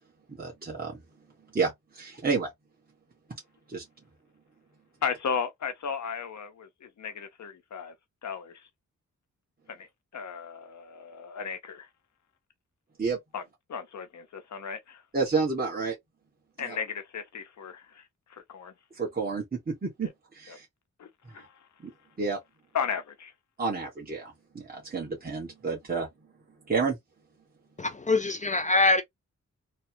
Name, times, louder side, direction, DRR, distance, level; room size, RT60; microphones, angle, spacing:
voice 1, 0.3-1.0 1.5-2.5 3.7-3.8 13.0-13.2 15.1-15.9 16.6-16.8 19.0-20.6 21.8-21.9 22.2-22.4 23.6-26.1 26.7-27.0, right 4 dB, 30° right, 1.5 m, -30 dB
voice 2, 5.0-7.9 8.2-8.7 9.7-9.9 10.1-11.9 13.3-13.4 13.7-15.0 16.6-18.7 20.5-20.6 21.0-21.7 22.7-23.3, left 6 dB, 65° left, 0.9 m, -35 dB
voice 3, 27.8-29.0, left 2 dB, 25° left, 0.5 m, -24 dB
3.2 x 2.4 x 2.8 m
wide cardioid pair, 105°, 30 cm